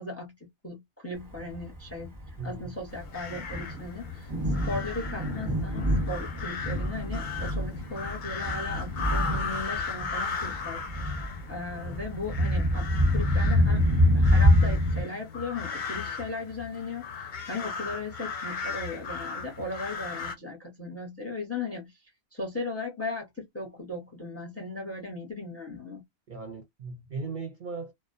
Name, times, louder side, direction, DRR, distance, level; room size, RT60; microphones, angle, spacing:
voice 1, 0.0-10.8 11.1-11.2 11.5-13.9 14.1-21.9 22.3-26.0, left 2 dB, 15° left, 0.7 m, -37 dB
Thunder, 1.4-15.0, left 1 dB, 20° right, 0.8 m, -26 dB
voice 2, 2.4-2.7 26.3-27.9, right 4 dB, 55° right, 0.7 m, -37 dB
sound 1, 2.9-20.3, left 5 dB, 55° left, 0.6 m, -37 dB
2.2 x 2.1 x 2.6 m
omnidirectional pair, 1.2 m